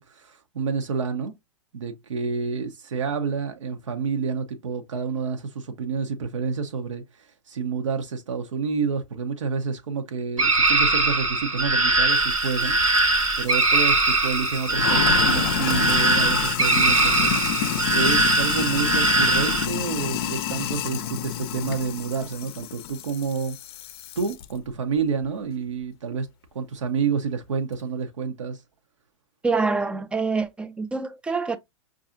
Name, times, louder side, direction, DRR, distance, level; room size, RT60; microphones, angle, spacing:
voice 1, 0.0-1.3 1.7-13.1 13.4-17.7 17.9-23.6 24.2-26.3 26.5-28.6, right 5 dB, 70° right, 0.7 m, -29 dB
sound 1, 10.4-19.7, right 2 dB, 90° right, 1.3 m, -21 dB
Sink (filling or washing), 12.1-24.4, left 9 dB, 50° left, 0.5 m, -29 dB
voice 2, 29.4-31.6, right 4 dB, 5° right, 0.3 m, -26 dB
5.4 x 2.5 x 2.5 m
figure-of-eight pair, 105°, 16 cm